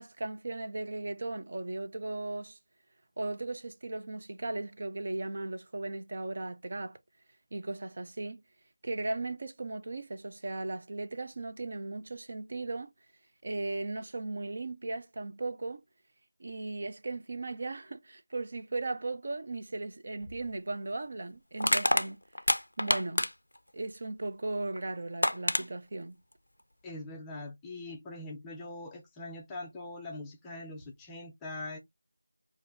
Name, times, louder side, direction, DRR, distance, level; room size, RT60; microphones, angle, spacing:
voice 1, 0.0-2.6 3.2-7.0 7.5-8.4 8.8-12.9 13.4-15.8 16.4-22.2 22.8-23.3 23.7-26.1, right 2 dB, 40° right, 0.6 m, -37 dB
Crushing, 20.2-20.4 21.6-23.6 24.8-24.9 25.2-25.6, left 1 dB, 90° left, 0.5 m, -27 dB
voice 2, 26.8-31.8, left 2 dB, 5° left, 0.4 m, -42 dB
6.6 x 2.5 x 2.6 m
figure-of-eight pair, 175°, 0 cm